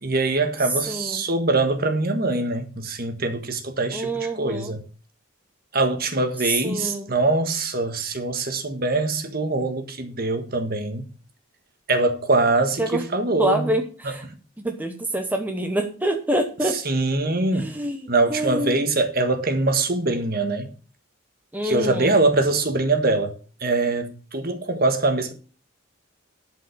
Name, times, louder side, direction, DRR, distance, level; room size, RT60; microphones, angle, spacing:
voice 1, 0.0-4.8 5.7-11.0 11.9-13.6 14.0-14.1 16.7-17.7 18.1-20.7 21.6-23.3 23.6-25.3, right 2 dB, 45° right, 1.6 m, -23 dB
voice 2, 0.9-1.2 3.9-4.7 6.4-7.1 12.8-13.0 13.4-14.2 14.6-16.8 17.5-18.9 21.5-22.1, right 1 dB, 10° right, 0.9 m, -26 dB
11.5 x 5.3 x 6.8 m
head